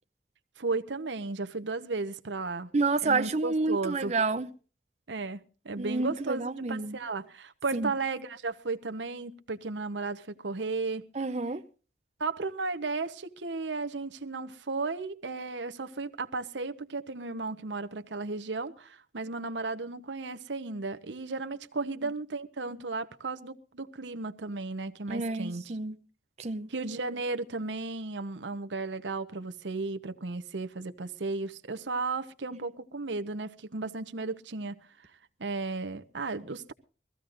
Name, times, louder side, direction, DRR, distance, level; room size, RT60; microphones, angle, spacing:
voice 1, 0.6-2.7 3.0-4.1 5.1-6.4 6.7-11.0 12.2-25.7 26.7-34.8 35.4-36.7, right 3 dB, 90° right, 0.9 m, -34 dB
voice 2, 2.7-4.5 5.8-7.0 7.7-7.9 11.2-11.6 25.1-26.0 26.4-26.7, right 3 dB, 35° right, 0.6 m, -29 dB
22.5 x 15.0 x 2.5 m
head